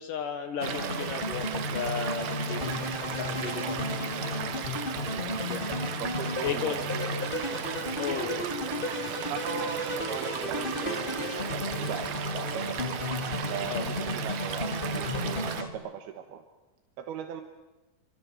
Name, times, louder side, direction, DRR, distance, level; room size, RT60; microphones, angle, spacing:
voice 1, 0.0-5.7 6.4-7.0 8.0-8.5 13.7-13.9, left 7 dB, 65° left, 7 dB, 2.8 m, -36 dB
sound 1, 0.6-15.7, left 2 dB, 15° left, 3.1 m, -33 dB
Stream / Liquid, 0.6-15.6, right 11 dB, 65° right, 2.0 m, -36 dB
voice 2, 5.1-5.4 6.0-7.3 9.3-12.9 13.5-14.7 14.9-16.4 17.0-17.4, right 8 dB, 85° right, 6 dB, 3.3 m, -39 dB
27.0 x 24.5 x 7.9 m, 1.1 s
omnidirectional pair, 4.4 m